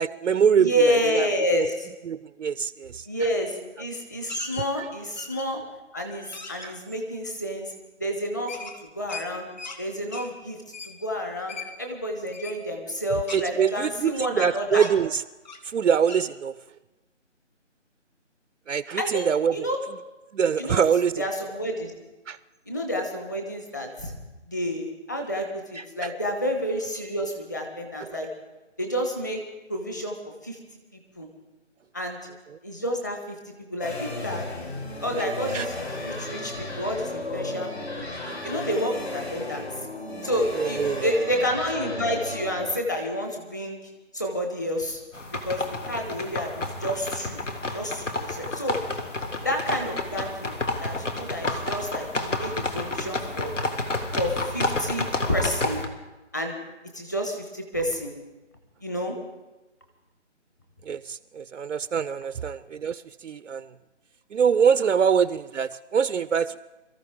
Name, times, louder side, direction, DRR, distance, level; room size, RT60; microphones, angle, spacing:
voice 1, 0.0-1.3 1.5-1.7 2.0-3.1 4.8-4.9 6.6-6.8 13.3-15.2 15.6-16.5 18.7-19.7 20.3-21.2 22.3-22.4 25.7-26.1 28.0-28.2 35.2-35.7 38.2-38.4 40.6-41.1 60.8-63.7 64.3-66.6, right 7 dB, 75° right, 15 dB, 0.5 m, -24 dB
voice 2, 0.6-1.7 3.1-5.6 5.9-7.7 8.0-8.7 9.0-9.5 9.8-10.6 10.8-14.8 19.0-19.8 20.6-20.8 21.2-21.9 22.7-24.1 24.5-28.3 28.8-29.4 29.7-30.1 30.4-30.6 31.2-31.3 31.9-32.2 32.6-34.5 35.0-35.7 36.0-37.7 38.0-38.1 38.4-39.7 40.2-43.8 44.1-45.0 45.4-47.4 47.7-48.8 49.4-50.5 50.8-53.5 54.1-55.8 56.3-56.6 56.9-58.1 58.8-59.1, equal, 15° left, 3 dB, 1.0 m, -29 dB
sound 1, 4.3-4.7 5.2-5.7 6.1-6.7 8.5-9.8 10.1-10.3 10.7-11.0 11.5-11.7 12.3-12.6 13.3-14.4 14.8-15.0 15.5-15.7 16.1-16.3, left 4 dB, 35° left, 1.3 m, -39 dB
sound 2, 33.8-42.7, left 2 dB, 60° left, 3.6 m, -34 dB
sound 3, 45.1-55.9, left 2 dB, 80° left, 2.1 m, -30 dB
23.0 x 14.0 x 3.7 m, 1.1 s
figure-of-eight pair, 165°, 37 cm